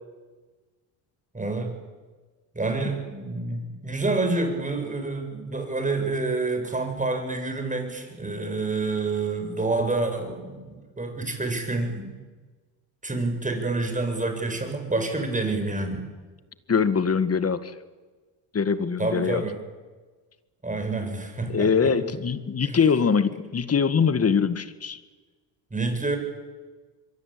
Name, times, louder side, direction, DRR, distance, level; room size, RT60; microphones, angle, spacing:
voice 1, 1.3-1.7 2.5-12.1 13.0-16.1 19.0-19.6 20.6-21.9 22.6-22.8 25.7-26.2, right 3 dB, 15° right, 5 dB, 7.3 m, -28 dB
voice 2, 16.7-17.7 18.5-19.4 21.5-25.0, left 6 dB, 30° left, 13 dB, 2.0 m, -23 dB
25.0 x 23.0 x 8.8 m, 1.3 s
supercardioid pair, 75°, 47 cm